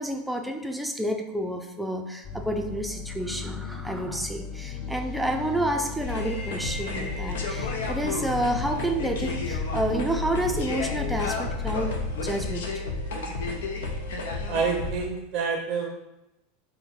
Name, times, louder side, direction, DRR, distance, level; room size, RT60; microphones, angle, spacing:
voice 1, 0.0-12.0 12.2-12.8, right 1 dB, 5° right, 3 dB, 0.5 m, -29 dB
sound 1, 2.2-12.3, left 6 dB, 35° left, 0.9 m, -35 dB
sound 2, 6.0-15.0, left 2 dB, 80° left, 0.6 m, -32 dB
voice 2, 14.5-15.9, right 5 dB, 50° right, 2 dB, 0.5 m, -27 dB
4.2 x 2.1 x 3.6 m, 0.94 s
hypercardioid pair, 100°, 0 cm